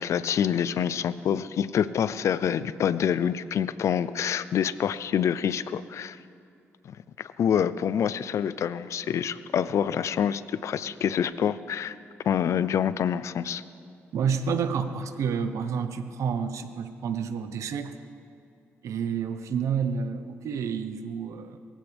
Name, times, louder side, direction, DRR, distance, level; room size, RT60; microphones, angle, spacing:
voice 1, 0.0-6.2 6.8-12.0 12.2-13.6, left 8 dB, 70° left, 15 dB, 0.5 m, -26 dB
voice 2, 14.1-17.9 18.8-21.6, right 6 dB, 75° right, 9 dB, 1.0 m, -29 dB
23.0 x 15.0 x 3.5 m, 2.5 s
cardioid pair, 70°, 5 cm